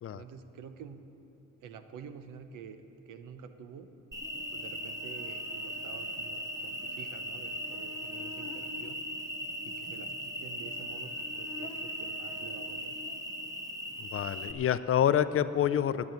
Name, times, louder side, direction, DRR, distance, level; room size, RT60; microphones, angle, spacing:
voice 1, 0.1-1.0 1.6-3.9 4.5-9.0 9.6-13.1, right 7 dB, 90° right, 9 dB, 0.8 m, -48 dB
Cricket, 4.1-14.5, equal, 10° right, 1.1 m, -38 dB
voice 2, 14.0-16.1, left 10 dB, 45° left, 14 dB, 0.5 m, -27 dB
10.5 x 8.5 x 9.1 m, 2.9 s
cardioid pair, 90°, 30 cm